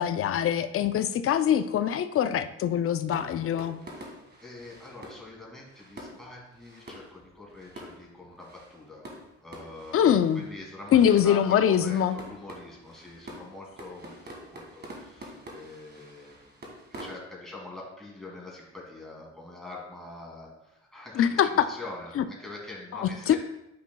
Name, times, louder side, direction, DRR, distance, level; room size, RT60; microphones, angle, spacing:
voice 1, 0.0-3.8 9.9-10.4 10.9-12.2 21.2-21.7 22.2-22.3 22.9-23.4, left 9 dB, 50° left, 11 dB, 0.5 m, -23 dB
sound 1, 3.0-17.2, right 1 dB, 35° right, 1.8 m, -47 dB
voice 2, 3.9-9.1 9.4-23.4, left 2 dB, ahead, -4 dB, 2.4 m, -44 dB
9.3 x 5.1 x 2.3 m, 0.89 s
cardioid pair, 90°, 30 cm